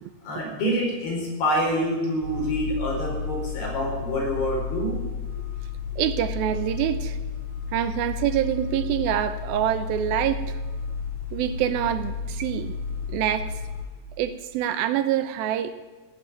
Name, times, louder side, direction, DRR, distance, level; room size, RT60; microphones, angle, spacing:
voice 1, 0.2-4.9 5.3-5.5, equal, 90° left, -1 dB, 6.5 m, -26 dB
sound 1, 2.2-13.9, left 5 dB, 35° left, 5.2 m, -32 dB
voice 2, 6.0-7.2 7.7-10.6 11.3-12.7 13.1-13.5 14.2-15.8, right 11 dB, 80° right, 10 dB, 2.5 m, -26 dB
17.0 x 8.8 x 9.5 m, 1.3 s
omnidirectional pair, 4.5 m